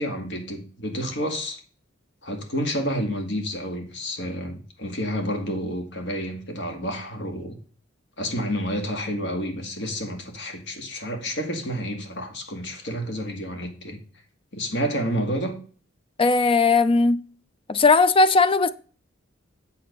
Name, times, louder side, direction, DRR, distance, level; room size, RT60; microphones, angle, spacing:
voice 1, 0.0-1.6 2.2-7.6 8.2-14.0 14.5-15.6, equal, 65° left, 1.9 m, -29 dB
voice 2, 16.2-17.2 17.7-18.7, left 3 dB, 30° left, 0.5 m, -18 dB
8.7 x 3.9 x 6.7 m
head